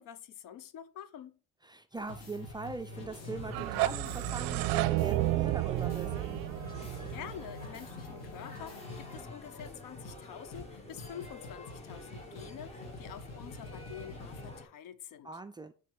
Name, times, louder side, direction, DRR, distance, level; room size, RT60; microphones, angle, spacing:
voice 1, 0.0-1.4 7.1-15.3, left 9 dB, 70° left, 0.8 m, -47 dB
voice 2, 1.6-6.4 15.2-15.7, right 3 dB, 15° right, 0.4 m, -41 dB
sound 1, 1.9-9.3 9.6-9.7 10.0-10.2 10.5-10.6 11.0-14.5, left 2 dB, 50° left, 2.5 m, -47 dB
sound 2, 2.9-14.6, left 2 dB, 20° left, 1.8 m, -48 dB
sound 3, 3.4-8.3, right 18 dB, 75° right, 0.5 m, -32 dB
7.5 x 4.7 x 5.2 m
cardioid pair, 155°, 34 cm